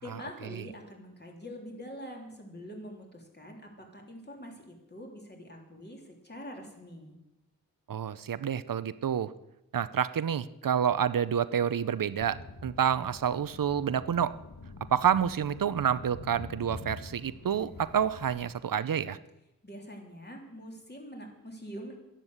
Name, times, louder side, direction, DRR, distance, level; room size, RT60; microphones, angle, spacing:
voice 1, 0.0-7.2 19.6-22.0, equal, 30° left, 1 dB, 3.3 m, -45 dB
voice 2, 7.9-9.3 9.7-14.3 14.9-19.2, right 8 dB, 70° right, 16 dB, 0.7 m, -28 dB
sound 1, 12.2-18.5, left 3 dB, 70° left, 1.5 m, -46 dB
11.5 x 11.0 x 8.0 m, 0.92 s
wide cardioid pair, 90°, 35 cm